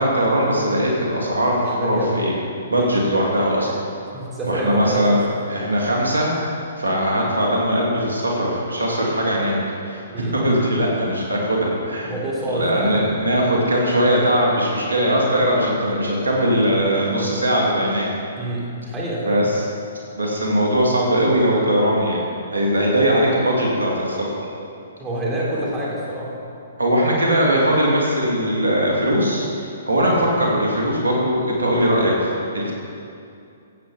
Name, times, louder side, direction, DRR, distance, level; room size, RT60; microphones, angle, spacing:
voice 1, 0.0-2.4 2.7-3.7 4.5-6.3 6.8-9.6 9.8-10.0 10.3-12.1 12.5-18.1 19.2-19.6 20.1-22.2 22.5-24.3 26.8-29.4 29.9-32.7, equal, 80° right, -3 dB, 2.8 m, -20 dB
voice 2, 1.6-2.2 2.7-2.9 4.1-5.2 9.0-9.1 10.1-10.4 12.0-13.1 18.4-19.4 25.0-26.3, right 1 dB, 15° right, -6 dB, 3.6 m, -27 dB
14.5 x 8.8 x 5.2 m, 2.5 s
figure-of-eight pair, 125°, 0 cm